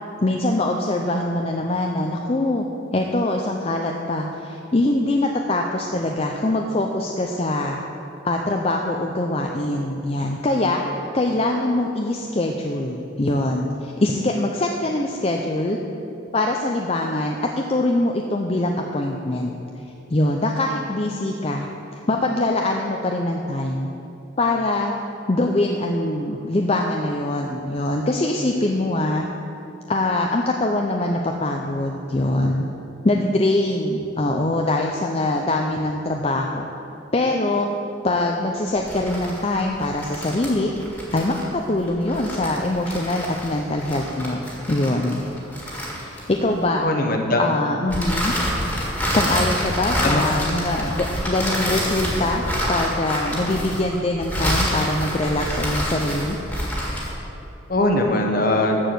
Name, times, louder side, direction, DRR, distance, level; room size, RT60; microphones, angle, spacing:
voice 1, 0.2-2.6 2.9-7.8 8.2-10.8 11.1-15.8 16.3-19.5 19.8-19.9 20.1-23.9 24.4-24.9 25.3-29.3 29.9-32.6 33.0-36.7 37.1-37.7 38.0-40.7 41.1-45.2 46.1-46.9 47.4-48.4 49.1-56.4, left 2 dB, 30° left, 1 dB, 0.5 m, -23 dB
sound 1, 38.8-46.6 47.9-57.2, equal, 5° left, 1.9 m, -27 dB
voice 2, 46.8-47.4 48.6-48.7 50.0-50.2 57.7-58.8, left 1 dB, 45° left, 3 dB, 1.1 m, -20 dB
13.5 x 4.7 x 7.8 m, 2.8 s
head